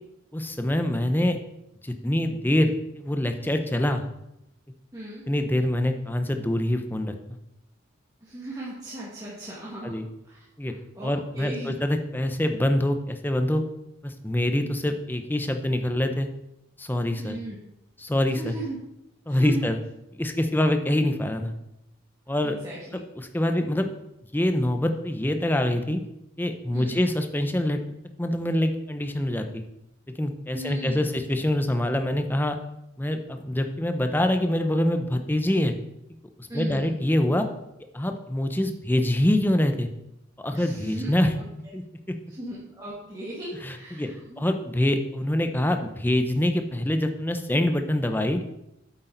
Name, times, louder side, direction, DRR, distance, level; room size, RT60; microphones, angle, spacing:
voice 1, 0.3-1.4 1.8-4.0 5.3-7.1 9.8-10.0 10.6-10.7 11.0-13.6 14.0-16.3 16.8-17.4 18.0-18.6 19.3-19.8 20.2-21.5 22.3-22.5 23.2-23.9 24.3-26.0 26.4-27.8 28.2-29.6 30.2-32.6 33.0-35.7 36.4-37.5 37.9-39.9 40.4-41.3 41.7-41.8 43.6-44.1 44.4-48.4, left 1 dB, 10° left, 6 dB, 0.7 m, -25 dB
voice 2, 4.9-5.2 8.2-11.7 17.2-17.6 18.3-18.8 19.3-19.7 22.4-23.0 26.7-27.0 30.5-31.1 36.5-36.9 40.5-41.1 41.4-41.5 42.3-44.4, right 1 dB, 20° right, -7 dB, 1.8 m, -37 dB
8.5 x 8.3 x 3.9 m, 0.85 s
head